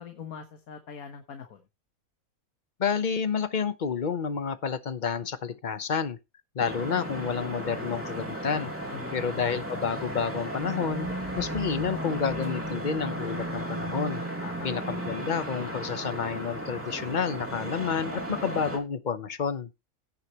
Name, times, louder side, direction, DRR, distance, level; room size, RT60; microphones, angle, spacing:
voice 1, 0.0-1.6 8.9-9.3 14.4-14.7, left 6 dB, 85° left, 1.7 m, -42 dB
voice 2, 2.8-6.2 6.5-8.7 9.1-11.1 11.4-14.2 14.6-19.7, left 6 dB, 40° left, 0.9 m, -30 dB
sound 1, 6.6-18.8, right 1 dB, 10° right, 2.5 m, -35 dB
17.0 x 6.5 x 3.0 m
omnidirectional pair, 1.5 m